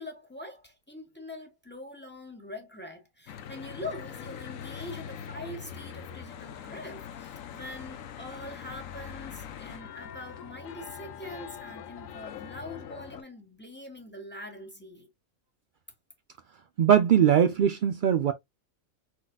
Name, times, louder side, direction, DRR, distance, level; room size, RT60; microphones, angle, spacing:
voice 1, 0.0-15.1, left 1 dB, 10° left, 1.2 m, -43 dB
Church bell / Traffic noise roadway noise, 3.3-13.2, left 8 dB, 75° left, 1.1 m, -42 dB
voice 2, 16.8-18.3, right 9 dB, 80° right, 0.4 m, -21 dB
4.7 x 4.0 x 2.2 m
omnidirectional pair, 1.4 m